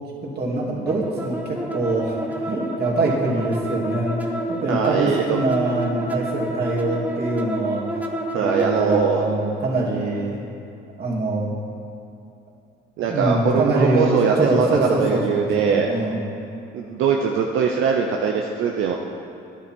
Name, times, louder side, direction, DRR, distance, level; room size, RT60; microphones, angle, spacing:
voice 1, 0.4-8.1 8.4-10.4 11.0-11.5 13.0-16.2, right 2 dB, 55° right, -4 dB, 2.6 m, -24 dB
sound 1, 0.8-9.1, equal, 10° right, 1.0 m, -29 dB
voice 2, 4.7-5.4 8.3-9.3 13.0-15.9 16.7-18.9, right 6 dB, 85° right, 1 dB, 0.7 m, -21 dB
11.0 x 10.0 x 4.5 m, 2.7 s
cardioid pair, 90°, 20 cm